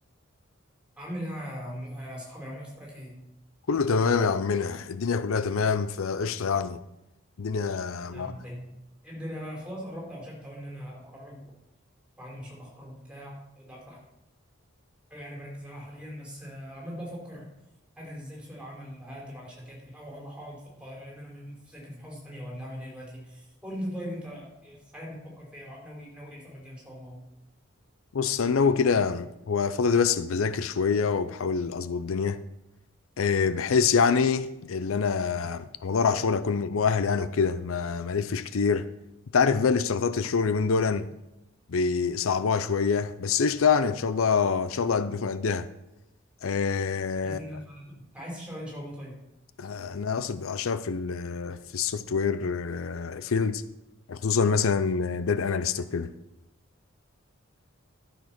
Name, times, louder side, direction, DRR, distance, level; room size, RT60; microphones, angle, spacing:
voice 1, 1.0-3.3 8.1-8.7 9.0-11.4 12.2-14.0 15.1-17.5 18.0-27.3 47.2-49.2, equal, 5° right, 4.2 m, -40 dB
voice 2, 3.7-6.8 7.4-8.3 28.1-32.4 33.2-38.9 39.3-41.1 41.7-45.7 46.4-47.4 49.6-53.6 54.1-56.1, left 5 dB, 80° left, 0.5 m, -26 dB
12.5 x 6.8 x 6.0 m
head